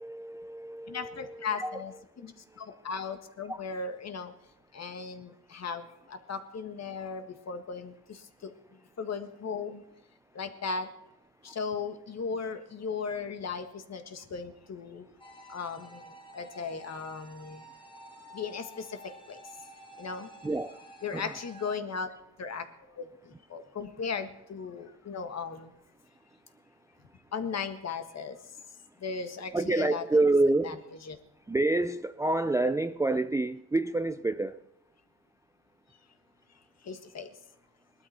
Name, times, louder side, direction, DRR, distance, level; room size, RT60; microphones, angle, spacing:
voice 1, 0.0-1.8 2.2-2.8 3.5-3.6 11.5-11.6 20.0-20.1 20.4-20.9 21.1-21.4 24.8-24.9 29.5-30.9 31.5-34.6, right 2 dB, 10° right, 0.4 m, -28 dB
voice 2, 0.9-1.9 2.2-4.3 4.7-8.5 9.0-9.8 10.3-10.9 11.4-15.1 15.5-17.7 18.3-19.4 20.0-20.3 21.0-22.1 22.4-25.7 27.3-28.4 29.0-30.0 30.6-30.7 31.1-31.2 36.8-37.3, left 5 dB, 45° left, 1.6 m, -37 dB
sound 1, 15.2-21.8, right 1 dB, 10° left, 2.3 m, -51 dB
19.5 x 12.5 x 4.3 m
cardioid pair, 90°, 38 cm